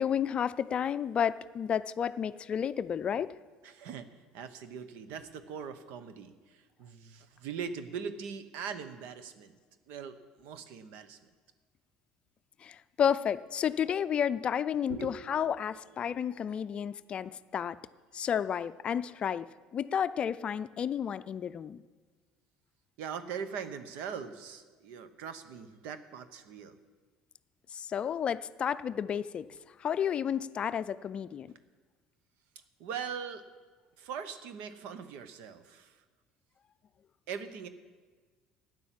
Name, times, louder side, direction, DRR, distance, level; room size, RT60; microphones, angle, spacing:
voice 1, 0.0-3.3 12.6-17.8 18.1-21.8 27.7-29.5 29.8-31.5, left 8 dB, 40° left, 14 dB, 0.4 m, -31 dB
voice 2, 3.6-4.1 4.3-9.6 9.9-11.3 14.9-16.6 16.9-17.0 23.0-26.8 32.8-33.4 34.0-36.0 37.3-37.7, right 7 dB, 75° right, 11 dB, 1.0 m, -41 dB
12.5 x 9.5 x 7.5 m, 1.4 s
cardioid pair, 110°, 3 cm